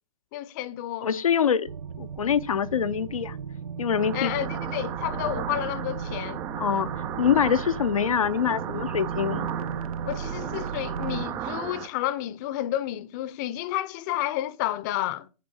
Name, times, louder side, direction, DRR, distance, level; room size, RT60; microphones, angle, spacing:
voice 1, 0.3-1.1 4.1-6.4 10.0-15.3, left 13 dB, 30° left, 0.7 m, -30 dB
voice 2, 1.0-1.7 2.0-3.4 3.8-4.3 6.6-9.5, left 8 dB, 75° left, 0.7 m, -25 dB
sound 1, 1.7-11.3, right 6 dB, 75° right, 0.6 m, -35 dB
sound 2, 3.9-11.9, right 10 dB, 15° right, 0.4 m, -35 dB
6.7 x 5.2 x 6.9 m
hypercardioid pair, 130°, 18 cm